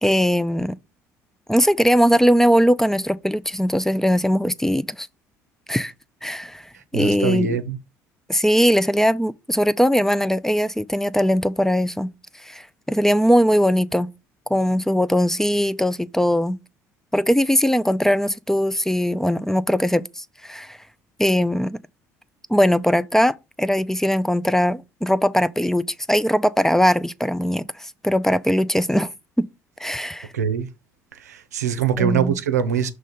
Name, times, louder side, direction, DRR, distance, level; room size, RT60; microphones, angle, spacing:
voice 1, 0.0-0.8 1.5-5.1 5.7-5.9 6.2-6.6 6.9-7.5 8.3-12.1 12.4-14.1 14.5-16.6 17.1-20.8 21.2-21.8 22.5-27.7 28.0-29.1 29.4-29.5 29.8-30.3 32.0-32.4, equal, 5° left, 0.4 m, -20 dB
voice 2, 6.7-7.8 30.3-30.7 31.1-32.9, right 7 dB, 90° right, 0.6 m, -23 dB
6.3 x 3.2 x 5.3 m
hypercardioid pair, 60°, 9 cm